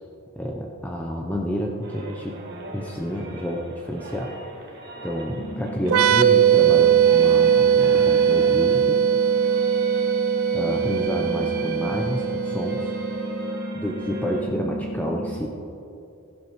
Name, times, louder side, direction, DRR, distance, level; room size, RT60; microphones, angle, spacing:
voice 1, 0.4-2.4 2.7-4.7 5.0-9.0 10.5-12.9 13.7-15.5, equal, 10° left, -1 dB, 0.6 m, -29 dB
sound 1, 1.8-14.4, right 2 dB, 50° right, 1.6 m, -39 dB
sound 2, 5.4-15.4, right 1 dB, 80° left, 1.3 m, -33 dB
sound 3, 5.9-13.4, right 9 dB, 80° right, 0.4 m, -20 dB
15.0 x 11.5 x 3.1 m, 2.7 s
head